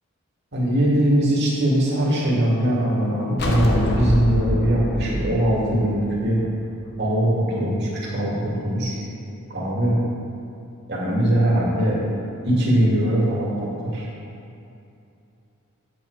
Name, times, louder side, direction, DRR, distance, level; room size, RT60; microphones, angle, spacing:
voice 1, 0.5-6.4 7.0-9.0 9.5-10.0 10.9-12.0 12.4-14.1, right 1 dB, 50° right, -5 dB, 2.4 m, -21 dB
sound 1, 3.4-6.8, left 1 dB, 50° left, 1.1 m, -25 dB
8.8 x 8.2 x 4.8 m, 2.7 s
head